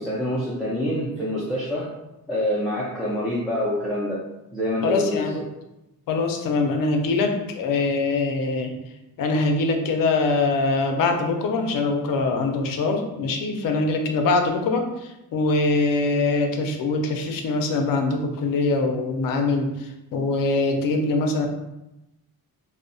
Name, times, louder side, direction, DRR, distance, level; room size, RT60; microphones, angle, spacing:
voice 1, 0.0-1.9 2.3-4.2 4.5-5.4, left 1 dB, ahead, -8 dB, 0.3 m, -26 dB
voice 2, 4.8-5.4 6.1-8.7 9.2-21.5, left 3 dB, 65° left, 4 dB, 0.5 m, -23 dB
2.7 x 2.1 x 2.6 m, 0.92 s
cardioid pair, 125°, 37 cm